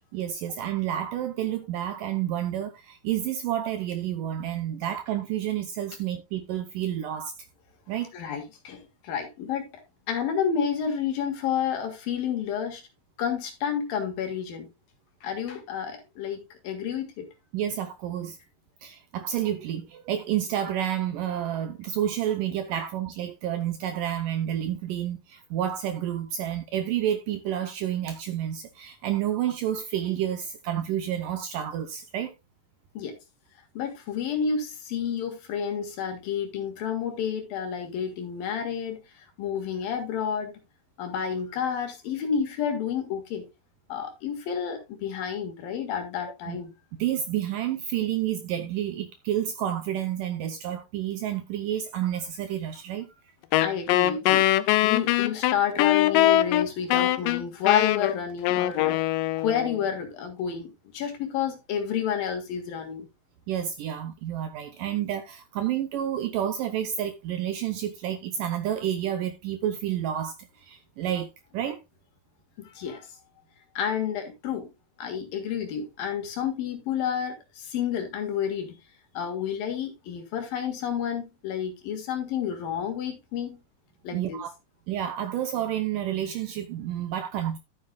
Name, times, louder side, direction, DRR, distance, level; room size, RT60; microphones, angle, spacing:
voice 1, 0.1-7.3 7.9-8.1 17.5-18.4 18.8-32.3 46.5-46.6 47.0-53.1 63.5-71.8 84.1-84.5 84.9-87.6, right 11 dB, 75° right, 2.1 m, -30 dB
voice 2, 8.1-9.7 10.1-12.8 13.2-14.7 15.2-17.3 22.8-22.9 32.9-33.2 33.7-40.5 41.0-43.4 43.9-46.7 53.6-54.5 54.8-59.0 59.4-63.1 72.6-73.1 73.7-74.7 75.0-78.8 79.1-83.6 84.0-84.4, left 7 dB, 65° left, 3.4 m, -30 dB
Wind instrument woodwind instrument, 53.5-59.8, left 14 dB, 85° left, 1.9 m, -22 dB
12.5 x 7.8 x 2.4 m
omnidirectional pair, 4.6 m